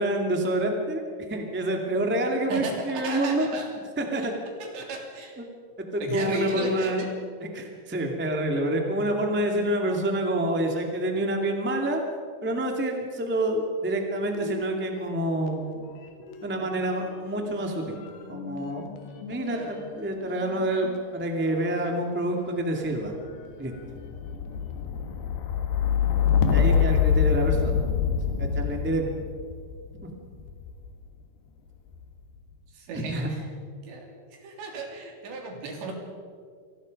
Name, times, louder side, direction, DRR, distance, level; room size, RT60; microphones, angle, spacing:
voice 1, 0.0-3.6 4.0-4.3 5.4-5.5 5.8-7.0 7.4-12.0 12.4-15.7 16.4-18.0 18.3-19.0 19.3-23.1 23.6-23.7 26.5-27.9 28.4-29.0 30.0-30.1 32.9-33.3, right 1 dB, 15° right, 2 dB, 0.3 m, -27 dB
voice 2, 2.5-3.7 4.2-4.3 4.6-5.3 6.0-7.1 19.5-19.8 26.7-27.0 32.9-33.2 33.9-34.1 34.4-35.9, right 3 dB, 75° right, 2 dB, 5.3 m, -34 dB
sound 1, 14.3-15.7 15.9-31.0 31.7-32.3, left 7 dB, 65° left, 3.4 m, -28 dB
26.5 x 19.5 x 5.4 m, 2.1 s
omnidirectional pair, 5.1 m